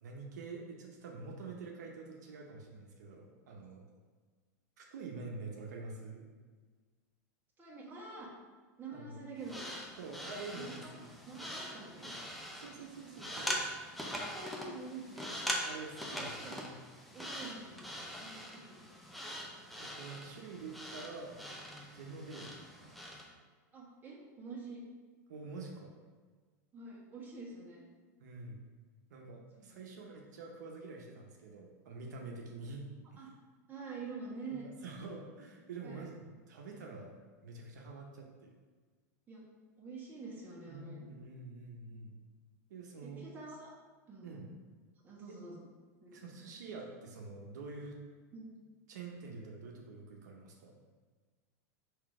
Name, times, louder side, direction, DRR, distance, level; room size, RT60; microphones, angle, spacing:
voice 1, 0.0-3.9 4.8-6.2 8.9-9.2 10.0-11.1 12.6-13.6 15.6-16.7 19.8-21.4 21.9-23.0 25.3-25.9 28.2-28.6 29.1-33.3 34.5-37.2 37.4-38.5 40.7-42.2 42.7-43.2 44.2-44.5 45.3-45.4 46.1-48.0 48.9-50.8, right 3 dB, 85° right, 0 dB, 0.7 m, -47 dB
voice 2, 7.6-8.3 8.8-9.6 10.5-10.7 11.0-12.1 14.0-15.3 16.2-16.5 17.1-18.8 23.7-24.8 26.7-27.8 29.6-29.9 33.2-33.3 33.7-34.7 35.8-36.0 39.3-39.4 39.8-41.1 43.0-43.7 44.1-44.5 45.0-45.7 46.0-46.3 48.3-48.5, right 3 dB, 20° right, -4 dB, 1.3 m, -47 dB
sound 1, 9.4-23.3, equal, ahead, 0.5 m, -42 dB
3.7 x 2.8 x 4.8 m, 1.4 s
supercardioid pair, 125°, 9 cm